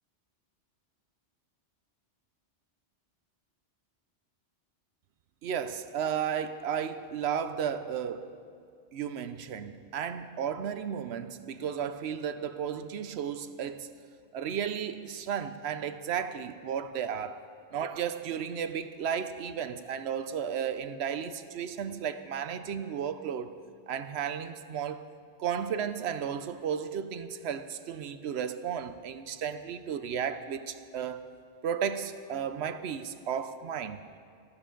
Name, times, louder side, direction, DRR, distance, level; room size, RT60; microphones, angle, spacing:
voice 1, 5.4-8.3 8.9-13.9 14.3-17.4 17.7-23.6 23.9-25.1 25.4-31.2 31.6-34.0, right 8 dB, 70° right, 0.8 m, -34 dB
18.5 x 14.0 x 3.8 m
omnidirectional pair, 1.2 m